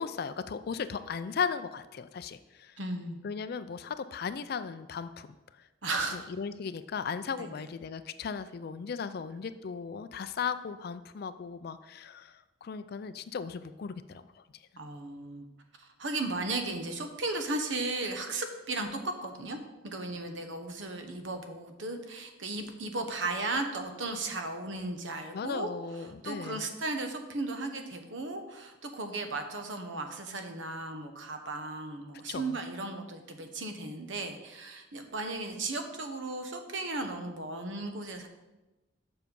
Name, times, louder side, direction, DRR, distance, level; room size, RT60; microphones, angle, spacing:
voice 1, 0.0-2.8 3.2-5.3 5.6-5.7 6.1-14.4 25.3-26.6 32.3-32.6, left 6 dB, 55° left, 11 dB, 0.4 m, -37 dB
voice 2, 2.8-3.2 5.8-6.2 7.4-7.5 14.8-15.5 15.8-19.6 19.8-25.7 26.2-38.3, right 2 dB, 80° right, 6 dB, 1.0 m, -35 dB
7.2 x 5.7 x 5.3 m, 1.1 s
head